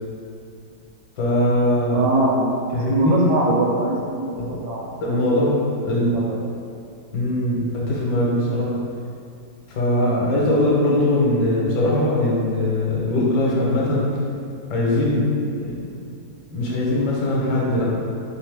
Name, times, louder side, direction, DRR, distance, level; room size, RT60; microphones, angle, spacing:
voice 1, 1.2-2.1 2.7-3.3 4.3-4.6 5.0-5.6 5.8-6.2 7.1-8.7 9.7-14.1 14.7-15.3 15.5-15.9 16.5-17.9, left 1 dB, 70° left, -4 dB, 1.3 m, -21 dB
voice 2, 1.9-2.5 2.9-4.8 5.1-5.5 5.8-6.4, right 2 dB, 75° right, -2 dB, 1.2 m, -23 dB
3.5 x 3.0 x 3.3 m, 2.5 s
omnidirectional pair, 2.0 m